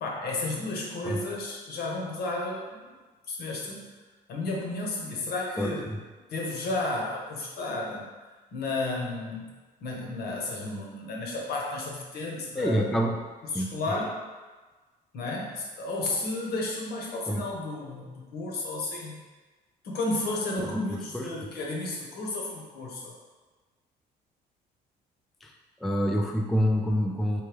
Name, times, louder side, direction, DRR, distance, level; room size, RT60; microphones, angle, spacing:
voice 1, 0.0-2.8 3.3-4.0 4.3-5.9 6.3-8.1 8.5-9.5 9.8-12.9 13.5-14.2 15.1-19.2 19.8-23.1, left 2 dB, 70° left, -2 dB, 1.1 m, -32 dB
voice 2, 5.6-6.0 12.6-13.1 13.5-14.0 17.3-17.5 20.6-21.3 25.4-25.5 25.8-27.4, equal, ahead, 1 dB, 0.4 m, -27 dB
4.5 x 3.2 x 3.4 m, 1.3 s
cardioid pair, 110°, 17 cm